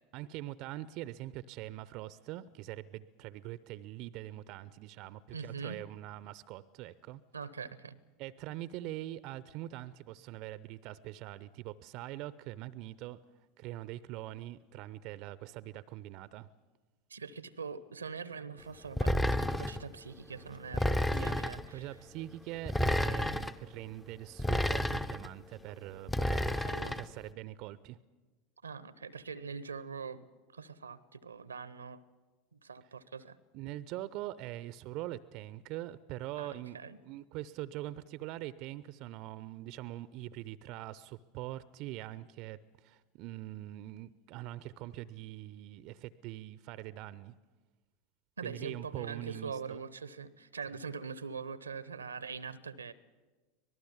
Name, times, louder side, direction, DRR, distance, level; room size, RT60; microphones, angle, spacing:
voice 1, 0.1-7.2 8.2-13.2 13.6-16.5 21.1-26.6 26.8-28.0 33.5-47.3 48.4-49.8, right 15 dB, 50° right, 18 dB, 0.7 m, -43 dB
voice 2, 5.3-5.8 7.3-8.0 17.1-21.9 26.5-27.0 28.6-32.0 32.5-33.4 36.4-37.0 48.4-52.9, right 5 dB, 80° right, 18 dB, 0.9 m, -43 dB
sound 1, 19.0-19.8 20.7-21.7 22.7-23.5 24.4-25.3 26.1-27.1, left 1 dB, 10° left, 0.8 m, -30 dB
25.0 x 19.0 x 7.3 m, 1.3 s
figure-of-eight pair, 80°, 0 cm